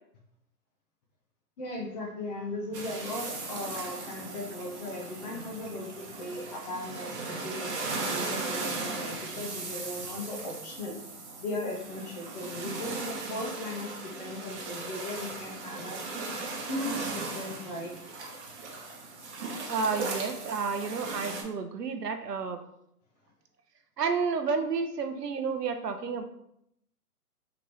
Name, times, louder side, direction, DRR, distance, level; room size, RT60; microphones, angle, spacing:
voice 1, 1.6-11.0 11.4-16.0 16.7-18.0, left 1 dB, 25° left, 0 dB, 0.8 m, -37 dB
sound 1, 2.7-21.4, right 3 dB, 45° right, 1.0 m, -37 dB
voice 2, 19.7-22.6 24.0-26.2, right 5 dB, 80° right, 7 dB, 0.7 m, -31 dB
3.8 x 3.4 x 3.3 m, 0.74 s
figure-of-eight pair, 130°, 47 cm